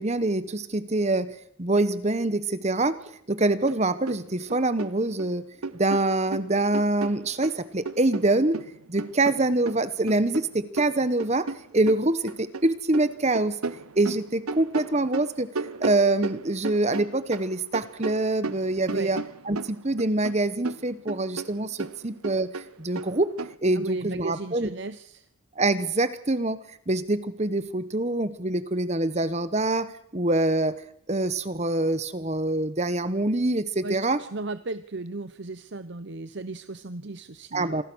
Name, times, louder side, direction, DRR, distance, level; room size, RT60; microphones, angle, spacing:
voice 1, 0.0-5.4 5.7-8.6 8.9-13.6 14.0-15.5 15.8-19.2 19.5-23.3 23.6-24.7 25.6-26.6 26.9-30.7 31.1-34.2 37.5-37.8, right 2 dB, 30° right, 14 dB, 1.1 m, -25 dB
sound 1, 3.7-3.8 4.1-5.3 5.6-7.6 7.9-12.6 12.9-17.5 17.7-20.4 20.6-23.5, right 3 dB, 90° right, 1.0 m, -35 dB
voice 2, 23.7-25.3 33.8-37.8, right 3 dB, 55° right, 12 dB, 0.9 m, -35 dB
27.0 x 19.0 x 6.3 m, 0.69 s
head